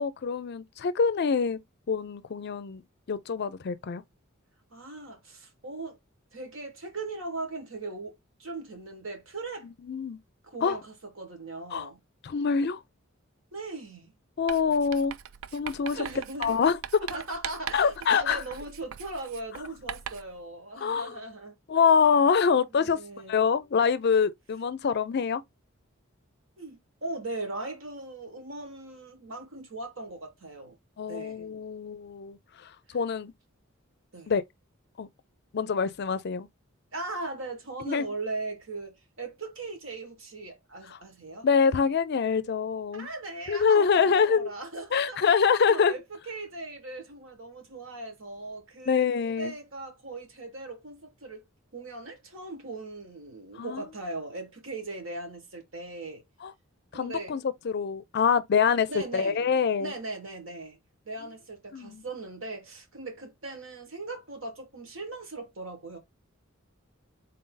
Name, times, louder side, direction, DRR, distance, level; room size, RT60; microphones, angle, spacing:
voice 1, 0.0-1.6 1.9-2.8 3.1-4.0 9.8-10.2 10.6-10.8 11.7-11.9 12.2-12.8 14.4-15.2 15.5-16.0 16.4-16.8 17.7-18.4 20.8-21.1 21.7-23.0 23.3-25.4 31.0-33.3 34.3-34.4 35.0-35.1 35.5-36.5 37.9-38.0 40.9-41.0 41.4-43.1 43.5-44.5 44.9-45.9 48.9-49.5 53.5-53.9 56.4-56.5 56.9-59.9 61.7-62.0, left 6 dB, 50° left, 0.4 m, -25 dB
voice 2, 4.7-6.0 6.3-8.1 8.4-9.7 10.4-12.0 13.5-14.1 15.9-16.6 17.1-21.5 22.7-23.5 26.6-30.7 31.1-31.4 34.1-34.3 36.9-41.5 42.9-45.3 45.7-46.0 46.3-49.1 49.4-51.4 51.7-56.2 56.9-57.3 58.9-59.5 59.8-60.8 61.0-66.0, right 2 dB, 65° right, 1.6 m, -39 dB
Writing, 14.5-20.4, right 9 dB, 85° right, 0.4 m, -41 dB
3.8 x 2.7 x 3.7 m
head